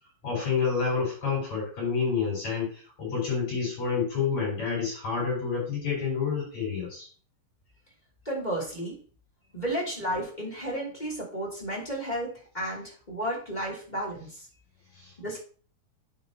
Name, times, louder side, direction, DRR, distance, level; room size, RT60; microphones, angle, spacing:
voice 1, 0.2-2.7 3.0-7.1, left 5 dB, 50° left, -5 dB, 6.2 m, -28 dB
voice 2, 8.2-9.0 9.5-14.5 15.2-15.4, right 1 dB, 15° left, -2 dB, 2.5 m, -33 dB
8.8 x 8.3 x 2.9 m, 0.41 s
omnidirectional pair, 4.2 m